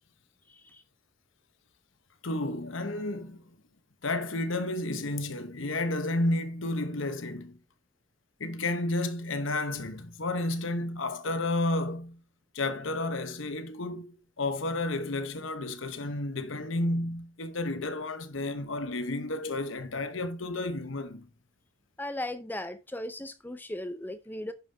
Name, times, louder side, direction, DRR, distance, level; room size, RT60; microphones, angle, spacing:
voice 1, 0.5-0.8 22.0-24.5, left 1 dB, 10° left, 0.6 m, -37 dB
voice 2, 2.2-3.5 4.0-7.6 8.4-12.2 12.5-14.0 14.4-21.3, left 2 dB, 75° left, 1.0 m, -31 dB
11.0 x 5.4 x 3.4 m
head